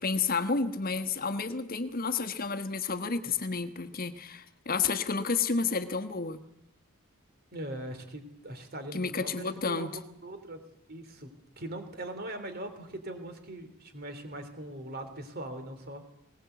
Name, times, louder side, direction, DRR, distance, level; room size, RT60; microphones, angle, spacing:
voice 1, 0.0-6.4 8.9-9.9, left 4 dB, 40° left, 8 dB, 1.3 m, -31 dB
voice 2, 7.5-9.9 10.2-10.6 10.9-11.3 11.6-16.1, right 1 dB, 45° right, 8 dB, 3.3 m, -41 dB
21.0 x 19.0 x 8.1 m, 0.81 s
head